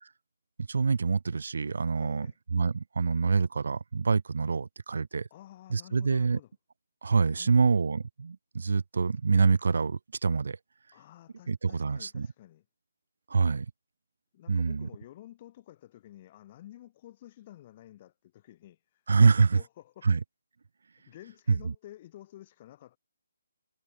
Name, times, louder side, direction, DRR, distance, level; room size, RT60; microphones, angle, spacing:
voice 1, 0.7-5.3 5.7-6.4 7.0-10.6 11.5-12.3 13.3-13.7 14.5-14.9 19.1-19.6 20.0-20.2 21.5-21.7, right 4 dB, 60° right, 1.0 m, -26 dB
voice 2, 2.0-2.4 5.3-6.5 7.3-7.8 10.9-12.6 14.3-20.1 21.1-23.0, left 13 dB, 20° left, 5.7 m, -51 dB
hypercardioid pair, 175°, 0 cm